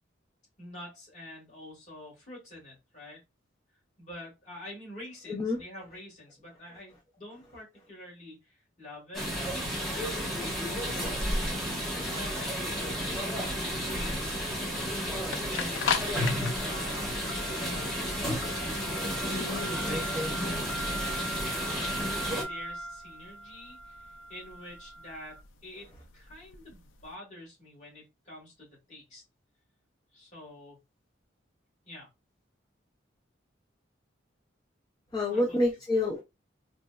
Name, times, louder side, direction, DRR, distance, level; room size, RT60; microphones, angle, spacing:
voice 1, 0.6-3.2 4.0-9.3 9.7-11.1 11.6-12.5 13.1-14.9 15.5-17.1 17.5-18.6 19.7-21.5 21.8-29.2 30.1-30.8 31.9-32.1 35.3-35.6, left 1 dB, 40° left, 1.5 m, -47 dB
voice 2, 5.3-5.6 19.2-20.6 35.1-36.2, left 2 dB, 20° left, 0.5 m, -30 dB
sound 1, 9.1-22.4, equal, ahead, 0.9 m, -32 dB
sound 2, 13.0-27.0, left 3 dB, 80° left, 0.4 m, -38 dB
4.0 x 2.1 x 2.2 m
head